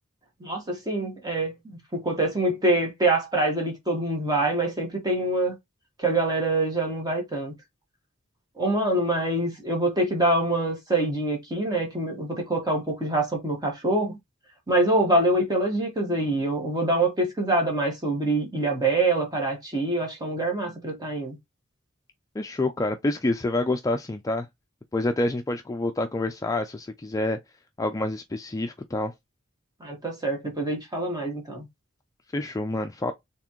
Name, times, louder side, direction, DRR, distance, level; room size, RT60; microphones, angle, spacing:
voice 1, 0.4-5.5 6.0-7.5 8.6-14.2 14.7-21.4 29.8-31.7, right 2 dB, 20° right, 1.6 m, -25 dB
voice 2, 22.4-24.5 24.9-27.4 27.8-29.1 32.3-33.1, left 2 dB, 15° left, 0.4 m, -27 dB
4.1 x 3.5 x 3.0 m
head